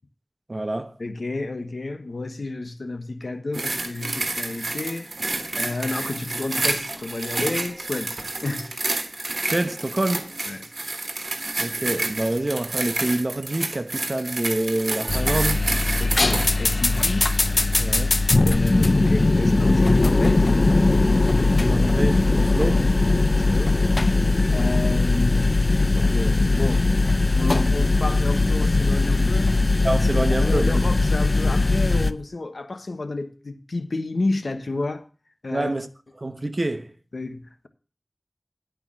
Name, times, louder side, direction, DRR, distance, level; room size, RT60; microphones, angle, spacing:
voice 1, 0.5-0.9 9.4-10.3 11.6-15.6 17.8-18.2 21.6-22.9 29.8-30.8 35.5-35.9 36.2-36.9, right 2 dB, 50° right, 1.0 m, -26 dB
voice 2, 1.0-5.1 5.5-8.1 8.4-8.8 10.5-10.7 16.0-17.3 18.4-20.5 23.3-23.8 24.5-25.6 26.0-26.9 27.3-29.6 30.4-35.0 35.4-35.7 37.1-37.7, left 2 dB, 80° left, 1.1 m, -30 dB
sound 1, 3.5-17.9 18.5-18.7, right 2 dB, 75° right, 1.3 m, -29 dB
sound 2, 15.1-32.1, left 2 dB, 65° left, 0.6 m, -20 dB
11.0 x 4.7 x 7.3 m
wide cardioid pair, 40°, 0 cm